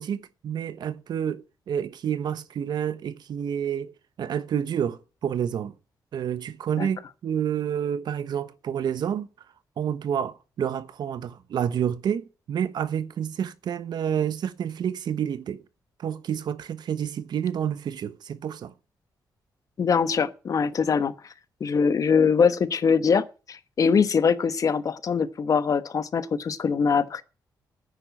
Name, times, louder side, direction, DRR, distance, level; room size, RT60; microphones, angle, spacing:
voice 1, 0.0-3.9 4.2-5.7 6.1-9.3 9.8-15.6 16.0-18.7, right 9 dB, 70° right, 1.2 m, -29 dB
voice 2, 19.8-21.1 21.6-27.2, left 6 dB, 50° left, 1.2 m, -23 dB
10.0 x 9.6 x 6.1 m
cardioid pair, 100°, 7 cm